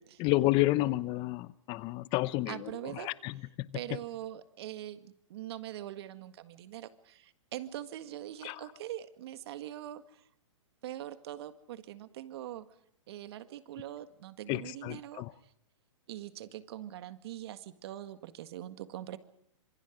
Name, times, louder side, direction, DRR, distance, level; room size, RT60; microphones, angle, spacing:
voice 1, 0.2-2.6 3.0-3.3 8.4-8.5 14.5-15.3, left 18 dB, 30° left, 18 dB, 0.9 m, -30 dB
voice 2, 2.5-3.5 3.7-10.2 10.8-12.7 13.1-15.2 16.1-19.2, right 12 dB, 55° right, 11 dB, 1.9 m, -43 dB
26.5 x 24.5 x 5.3 m, 0.69 s
hypercardioid pair, 140°, 16 cm